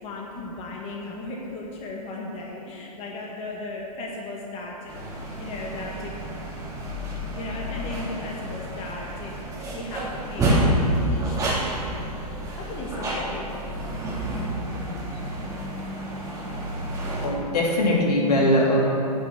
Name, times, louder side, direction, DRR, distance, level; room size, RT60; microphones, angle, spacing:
voice 1, 0.0-4.9 5.4-6.1 7.3-9.3 9.7-10.8 11.1-12.0 12.6-13.5 16.5-16.6, left 2 dB, 30° left, -2 dB, 1.7 m, -36 dB
sound 1, 4.9-17.3, right 1 dB, 15° right, 2.6 m, -29 dB
voice 2, 17.2-18.8, left 1 dB, 75° left, -3 dB, 2.9 m, -21 dB
9.8 x 6.3 x 8.8 m, 2.8 s
hypercardioid pair, 115°, 20 cm